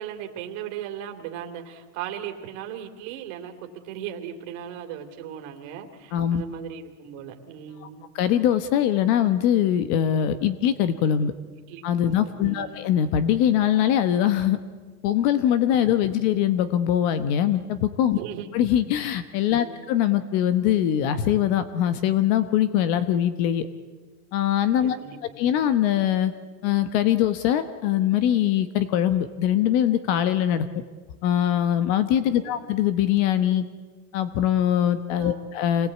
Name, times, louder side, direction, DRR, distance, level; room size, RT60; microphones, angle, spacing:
voice 1, 0.0-8.0 11.7-11.8 12.1-12.8 16.1-16.2 18.1-18.5 19.5-19.9 24.8-25.5 32.3-32.6 35.2-35.5, right 9 dB, 50° right, 4 dB, 2.8 m, -37 dB
voice 2, 6.1-6.4 8.1-11.3 11.8-14.6 15.0-18.2 18.5-23.7 24.3-25.0 25.4-26.3 26.6-30.6 31.2-33.7 34.1-35.9, left 10 dB, 45° left, 12 dB, 1.1 m, -22 dB
26.5 x 19.5 x 8.4 m, 1.5 s
supercardioid pair, 155°, 45 cm